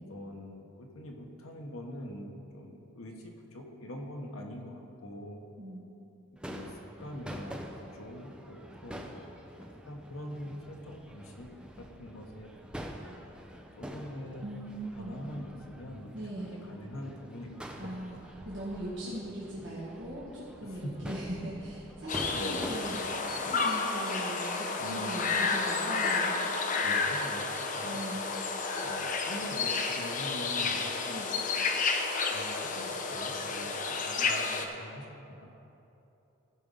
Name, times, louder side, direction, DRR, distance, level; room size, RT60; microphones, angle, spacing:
voice 1, 0.0-5.4 6.5-11.5 11.8-12.5 13.3-13.4 13.8-14.5 14.9-18.2 20.6-20.9 22.3-22.7 24.8-25.2 26.7-28.0 28.8-31.2 32.3-35.6, equal, 85° left, 2 dB, 1.2 m, -44 dB
voice 2, 5.6-5.9 14.4-15.2 16.1-16.6 17.8-18.1 18.4-23.0 23.4-26.3 27.8-28.3 31.1-31.3, right 1 dB, 60° right, -8 dB, 1.5 m, -40 dB
Crowd / Fireworks, 6.4-23.7, equal, 5° right, 0.5 m, -46 dB
sound 1, 22.1-34.7, left 4 dB, 40° left, 0.6 m, -31 dB
14.0 x 5.0 x 5.5 m, 3.0 s
head